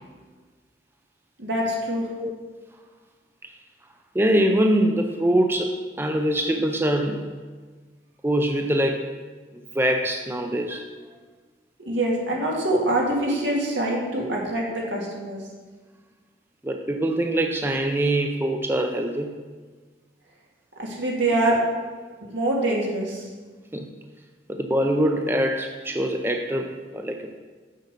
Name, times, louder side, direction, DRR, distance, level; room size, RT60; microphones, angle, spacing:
voice 1, 1.4-2.1 11.8-15.4 20.8-21.6 22.3-23.3, right 1 dB, 85° right, -2 dB, 2.1 m, -24 dB
voice 2, 4.1-7.3 8.2-9.1 9.7-10.8 16.6-19.4 23.7-23.9 24.5-27.4, right 1 dB, 15° right, 4 dB, 0.5 m, -23 dB
7.0 x 6.6 x 5.2 m, 1.4 s
head